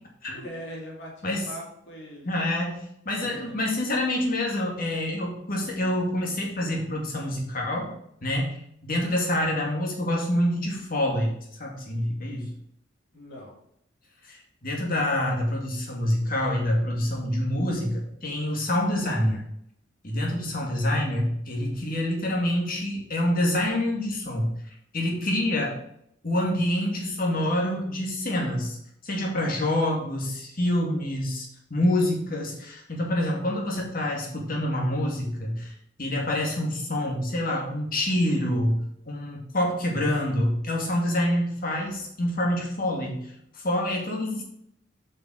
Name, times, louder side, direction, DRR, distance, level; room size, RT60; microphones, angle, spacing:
voice 1, 0.3-2.3 3.2-3.6 13.1-13.5, equal, 65° left, -2 dB, 2.5 m, -41 dB
voice 2, 2.2-7.9 8.2-8.6 8.8-11.3 11.6-12.5 14.2-19.5 20.0-24.5 24.9-25.8 26.2-28.8 29.0-35.7 36.0-38.8 39.1-44.4, left 1 dB, 50° left, -1 dB, 2.2 m, -26 dB
8.1 x 5.6 x 4.8 m, 0.75 s
head